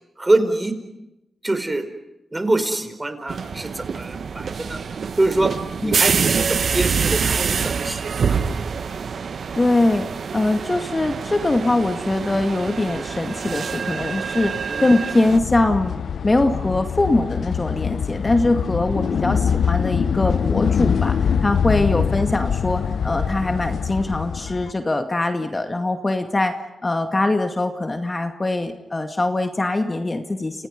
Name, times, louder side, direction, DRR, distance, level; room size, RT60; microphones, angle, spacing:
voice 1, 0.2-0.8 1.4-1.9 2.3-4.8 5.2-5.5 5.8-8.5 14.7-14.8 21.9-22.0, right 2 dB, 20° right, 9 dB, 4.7 m, -24 dB
sound 1, 3.3-15.4, right 6 dB, 65° right, 1.4 m, -25 dB
voice 2, 9.5-10.1 10.3-16.0 16.2-26.6 26.8-30.7, left 2 dB, 30° left, 6 dB, 2.2 m, -22 dB
sound 2, 15.3-24.7, left 7 dB, 70° left, 0.8 m, -23 dB
29.5 x 29.0 x 5.3 m, 0.91 s
cardioid pair, 60°, 0 cm